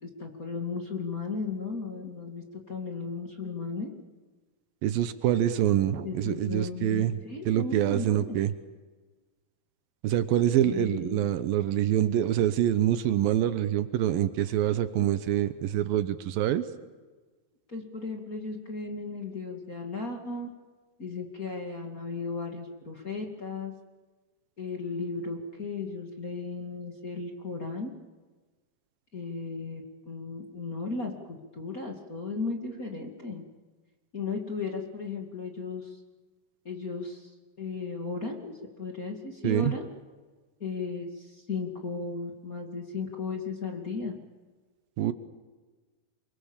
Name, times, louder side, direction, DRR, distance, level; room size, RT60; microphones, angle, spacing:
voice 1, 0.0-3.9 6.0-8.4 10.6-11.2 14.9-15.1 17.7-20.5 21.0-23.7 24.6-27.9 29.1-33.4 34.1-36.0 36.6-39.9 40.6-44.1, left 4 dB, 25° left, 1 dB, 2.3 m, -35 dB
voice 2, 4.8-7.1 7.5-8.5 10.0-16.6 39.4-39.7 45.0-45.1, right 11 dB, 75° right, 12 dB, 2.7 m, -25 dB
28.0 x 24.5 x 7.3 m, 1.3 s
omnidirectional pair, 4.3 m